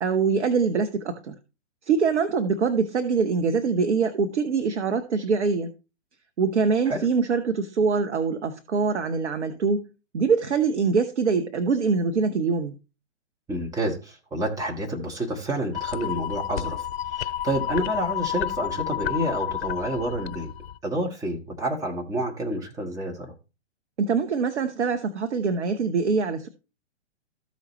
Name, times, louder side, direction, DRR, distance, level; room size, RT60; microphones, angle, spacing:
voice 1, 0.0-1.3 1.9-5.7 6.4-9.8 10.1-12.8 24.0-26.5, right 5 dB, 65° right, 1.0 m, -24 dB
voice 2, 13.5-20.5 20.8-23.3, right 1 dB, 10° right, 1.5 m, -29 dB
sound 1, 15.7-20.8, left 11 dB, 55° left, 0.5 m, -30 dB
14.0 x 5.1 x 3.1 m
figure-of-eight pair, 125°, 37 cm